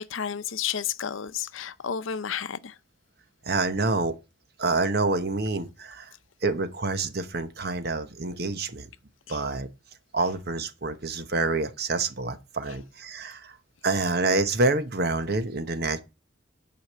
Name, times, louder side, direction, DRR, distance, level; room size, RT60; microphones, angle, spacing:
voice 1, 0.0-2.8 9.3-9.4, left 8 dB, 80° left, 0.6 m, -31 dB
voice 2, 3.4-4.2 4.6-6.1 6.4-8.9 9.3-9.7 10.1-13.6 13.8-16.0, right 3 dB, 50° right, 1.0 m, -27 dB
8.1 x 5.1 x 7.4 m
head